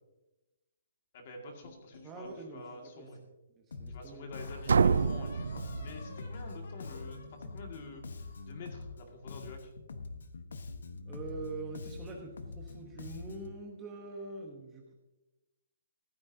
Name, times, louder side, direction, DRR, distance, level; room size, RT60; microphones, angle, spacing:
voice 1, 1.1-3.2 3.9-8.0 8.4-9.7, left 2 dB, 30° left, 2 dB, 2.0 m, -47 dB
sound 1, 1.6-3.2 3.7-3.8 4.4-8.6, left 1 dB, 55° left, 3.9 m, -51 dB
voice 2, 2.0-3.1 3.6-4.3 11.1-14.9, right 3 dB, 10° right, 1 dB, 0.9 m, -44 dB
Bass guitar, 3.7-4.1 4.3-9.0 9.3-13.6, left 3 dB, 85° left, 1.3 m, -44 dB
sound 2, 4.7-6.5, right 5 dB, 80° right, 0.4 m, -28 dB
15.0 x 12.5 x 2.7 m, 1.0 s
hypercardioid pair, 175°, 0 cm